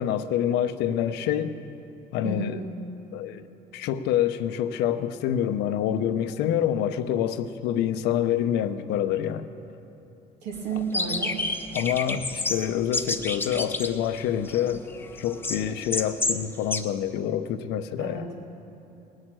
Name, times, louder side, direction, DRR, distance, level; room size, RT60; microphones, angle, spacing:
voice 1, 0.0-1.5 2.1-2.6 3.1-3.5 3.7-9.5 11.7-14.9 15.2-18.3, left 10 dB, 90° left, 11 dB, 0.7 m, -26 dB
voice 2, 2.2-2.6 10.4-11.3 18.0-18.4, right 5 dB, 90° right, 0 dB, 2.5 m, -32 dB
sound 1, 10.9-16.4 16.7-16.8, left 2 dB, 15° left, 0.7 m, -30 dB
19.0 x 6.5 x 8.8 m, 2.9 s
cardioid pair, 110°, 17 cm